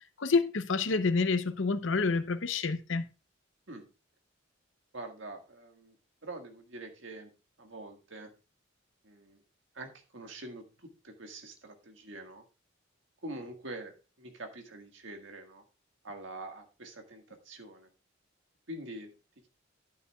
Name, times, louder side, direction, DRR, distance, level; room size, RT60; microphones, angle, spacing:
voice 1, 0.2-3.1, left 4 dB, 70° left, 0.7 m, -28 dB
voice 2, 4.9-5.9 6.2-7.3 7.6-8.3 9.0-9.4 9.7-12.4 13.2-15.6 16.0-17.9 18.7-19.1, right 2 dB, 70° right, 1.6 m, -45 dB
10.5 x 9.3 x 2.3 m
head